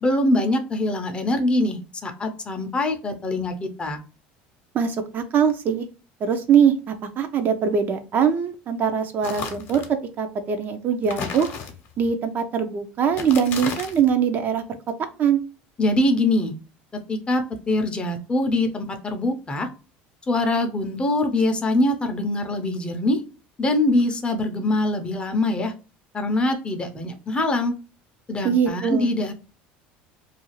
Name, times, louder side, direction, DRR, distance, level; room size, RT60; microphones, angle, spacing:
voice 1, 0.0-4.0 15.8-16.5 17.1-19.7 20.3-23.2 23.6-25.7 26.1-27.8 28.3-29.3, left 1 dB, 20° left, 6 dB, 0.6 m, -23 dB
voice 2, 4.7-5.9 6.2-9.8 10.2-11.5 12.0-14.6 15.2-15.4 28.4-29.1, right 7 dB, 45° right, 7 dB, 0.5 m, -22 dB
sound 1, 9.2-9.9 11.0-12.1 13.1-14.1, left 5 dB, 55° left, 0.8 m, -33 dB
2.4 x 2.3 x 3.0 m, 0.33 s
supercardioid pair, 110°, 5 cm